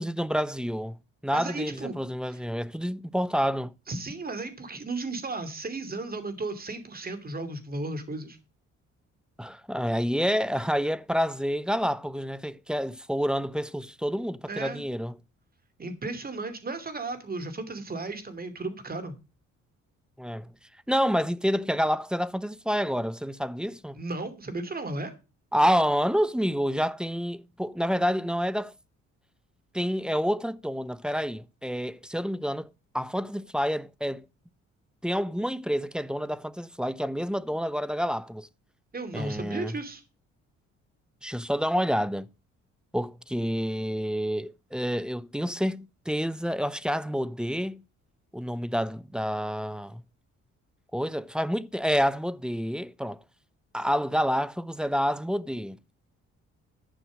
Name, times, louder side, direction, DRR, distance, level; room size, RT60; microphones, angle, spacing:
voice 1, 0.0-3.7 9.4-15.2 20.2-20.5 20.9-24.0 25.5-28.8 29.7-32.7 32.9-34.3 35.0-38.5 39.1-39.8 41.2-42.3 42.9-47.8 48.3-50.0 50.9-53.2 53.7-55.8, equal, 5° right, 0.5 m, -28 dB
voice 2, 1.3-2.0 2.3-2.4 3.9-8.4 14.5-14.8 15.8-19.2 23.9-25.1 38.9-40.0, right 3 dB, 30° right, 2.7 m, -34 dB
11.5 x 6.1 x 6.2 m
cardioid pair, 90°, 30 cm